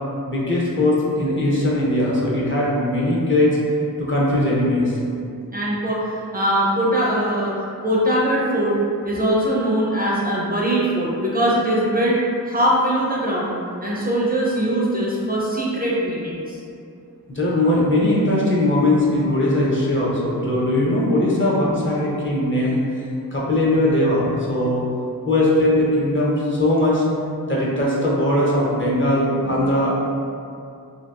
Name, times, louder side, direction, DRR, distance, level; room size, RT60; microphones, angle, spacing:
voice 1, 0.3-3.6 4.0-5.0 17.3-22.8 23.3-24.9 25.3-27.0 27.5-29.9, left 1 dB, 35° left, -6 dB, 0.6 m, -20 dB
voice 2, 5.5-8.8 9.0-12.2 12.5-16.6, right 1 dB, 25° right, -6 dB, 0.4 m, -21 dB
2.7 x 2.4 x 2.3 m, 2.4 s
wide cardioid pair, 65°, 35 cm